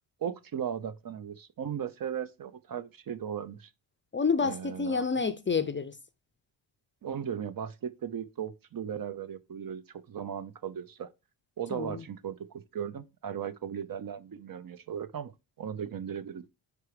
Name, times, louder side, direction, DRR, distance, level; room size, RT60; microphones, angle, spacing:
voice 1, 0.2-3.7 4.4-5.0 7.0-9.8 10.1-11.1 11.6-12.4 12.7-15.3 15.6-16.5, right 8 dB, 45° right, 0.7 m, -37 dB
voice 2, 4.1-6.0 11.7-12.0, left 5 dB, 25° left, 0.5 m, -29 dB
4.9 x 4.7 x 4.8 m
cardioid pair, 90°, 49 cm